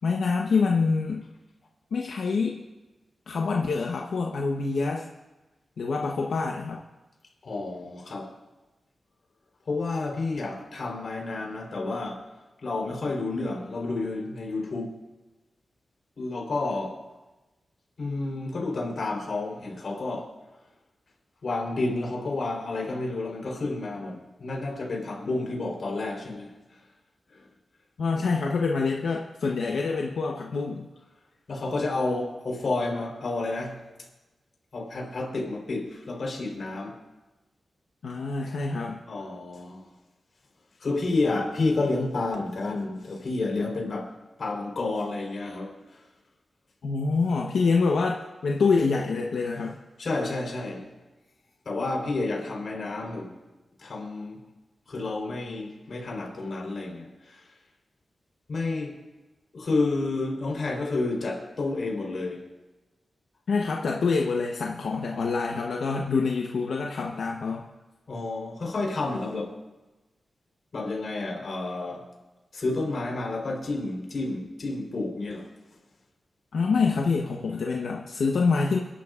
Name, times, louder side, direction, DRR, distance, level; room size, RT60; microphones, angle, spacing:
voice 1, 0.0-1.2 1.9-2.6 3.3-5.1 5.8-6.8 28.0-30.9 38.0-39.0 46.8-49.8 63.5-67.6 76.5-78.8, left 4 dB, 90° left, -1 dB, 0.9 m, -26 dB
voice 2, 7.4-8.3 9.7-12.2 12.6-14.9 16.2-17.0 18.0-20.3 21.4-26.5 27.3-27.5 31.5-33.8 34.7-37.0 39.1-39.8 40.8-44.1 44.4-45.8 50.0-50.9 51.7-53.4 53.8-54.4 54.9-57.4 58.5-58.9 59.5-62.5 68.1-69.6 70.7-72.1 72.5-75.5, left 2 dB, 60° left, 0 dB, 3.7 m, -30 dB
29.0 x 11.5 x 2.5 m, 1.1 s
wide cardioid pair, 140°, 0 cm